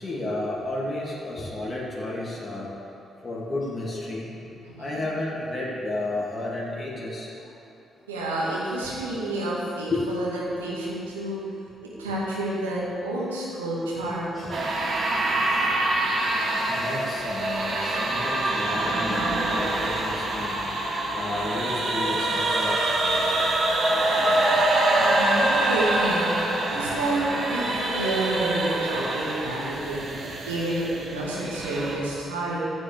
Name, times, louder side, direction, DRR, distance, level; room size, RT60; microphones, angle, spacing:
voice 1, 0.0-2.7 3.2-4.3 4.8-7.3 9.9-10.0 14.0-23.6 23.9-24.5, left 2 dB, 25° left, -6 dB, 2.8 m, -33 dB
voice 2, 4.7-5.0 8.1-11.4 12.0-14.4 24.9-26.3 26.7-27.2 27.5-30.1 30.4-30.9 31.1-32.7, right 2 dB, 85° right, -7 dB, 2.0 m, -29 dB
sound 1, 14.5-32.0, right 2 dB, 50° right, 1.7 m, -25 dB
14.5 x 8.0 x 3.6 m, 2.7 s
figure-of-eight pair, 40°, 0 cm